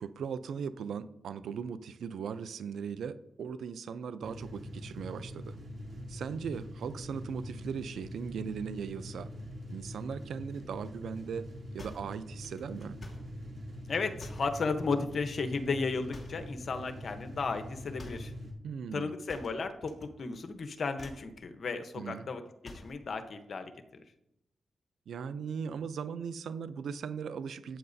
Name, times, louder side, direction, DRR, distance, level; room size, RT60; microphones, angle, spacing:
voice 1, 0.0-5.6 6.1-9.3 9.7-11.5 11.7-13.0 18.6-19.1 22.0-22.3 25.1-27.8, right 6 dB, 85° right, 13 dB, 0.5 m, -38 dB
sound 1, 4.2-18.5, equal, 55° right, 2.7 m, -44 dB
sound 2, 11.8-13.3 14.2-14.6 16.1-16.5 18.0-18.3 19.3-20.1 20.3-20.6 20.9-21.3 22.6-23.0, left 2 dB, 35° left, 2.4 m, -49 dB
voice 2, 13.9-18.3 18.9-22.4 22.7-23.7, left 4 dB, 60° left, 7 dB, 0.9 m, -34 dB
13.5 x 8.5 x 2.7 m, 0.86 s
cardioid pair, 60°, 0 cm